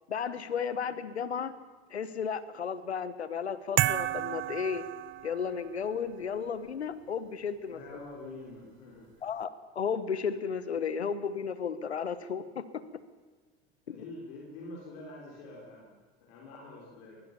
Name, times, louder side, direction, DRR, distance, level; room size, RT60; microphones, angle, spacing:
voice 1, 0.1-1.5 1.9-4.8 5.2-7.8 9.2-9.5 9.7-12.8, left 6 dB, 85° left, 14 dB, 1.2 m, -33 dB
sound 1, 3.8-5.7, right 15 dB, 40° right, 0.6 m, -31 dB
voice 2, 7.7-9.3 13.9-17.2, left 2 dB, 65° left, -2 dB, 5.1 m, -46 dB
22.5 x 16.5 x 7.1 m, 1.4 s
hypercardioid pair, 75°, 32 cm